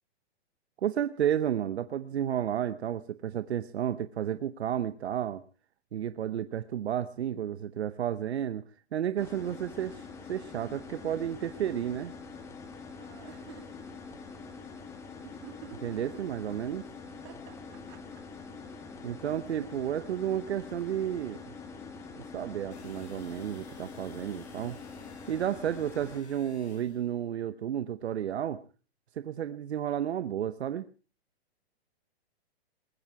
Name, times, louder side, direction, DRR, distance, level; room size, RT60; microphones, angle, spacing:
voice 1, 0.8-5.4 5.9-8.6 8.9-12.1 15.8-16.8 19.0-21.6 22.2-24.8 25.3-28.6 29.1-30.9, right 10 dB, 90° right, 13 dB, 0.9 m, -32 dB
sound 1, 9.2-26.2, left 4 dB, 10° left, 1.3 m, -45 dB
sound 2, 13.0-13.7 15.2-16.2 17.1-18.4, right 11 dB, 30° right, 2.4 m, -49 dB
sound 3, 22.7-27.1, left 5 dB, 90° left, 4.9 m, -56 dB
20.0 x 15.0 x 4.8 m, 0.38 s
hypercardioid pair, 170°, 32 cm